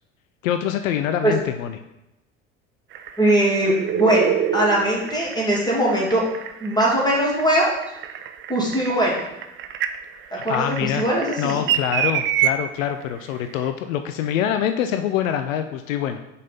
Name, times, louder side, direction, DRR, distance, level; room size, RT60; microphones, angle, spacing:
voice 1, 0.4-1.8 10.3-11.0 11.4-16.2, left 9 dB, 75° left, 8 dB, 0.5 m, -25 dB
sound 1, 2.9-12.5 13.7-13.8, right 10 dB, 30° right, 0.4 m, -27 dB
voice 2, 3.2-6.2 6.6-7.7 8.5-9.2 10.4-11.6, right 1 dB, 10° left, -4 dB, 2.5 m, -20 dB
5.3 x 4.2 x 5.2 m, 0.89 s
figure-of-eight pair, 65°, 40 cm